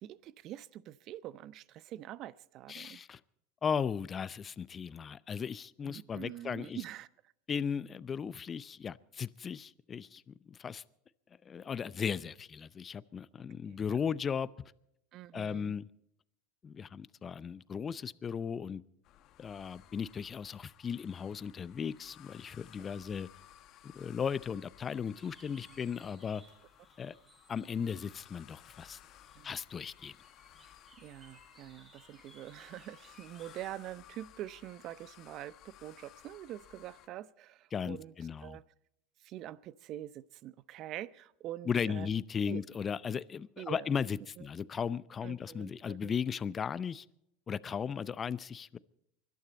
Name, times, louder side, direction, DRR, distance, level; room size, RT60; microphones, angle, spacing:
voice 1, 0.0-3.0 5.8-7.1 13.7-13.8 15.1-15.7 23.0-23.1 29.4-29.5 31.0-38.1 38.4-38.6 39.2-42.1 42.5-42.6 43.6-43.9 44.4-44.5 45.2-46.1, right 13 dB, 50° right, 0.7 m, -45 dB
voice 2, 2.7-3.2 3.6-6.8 7.5-10.8 11.5-14.5 15.3-15.9 16.6-18.8 19.4-23.3 23.8-26.4 27.0-27.1 27.5-29.0 29.4-30.1 37.7-38.6 41.7-47.1 47.5-48.8, left 7 dB, 30° left, 0.6 m, -36 dB
sound 1, 19.0-37.1, left 12 dB, 50° left, 1.1 m, -58 dB
sound 2, 25.1-33.7, right 2 dB, 20° right, 6.0 m, -63 dB
24.0 x 12.0 x 4.1 m
hypercardioid pair, 85°, 0 cm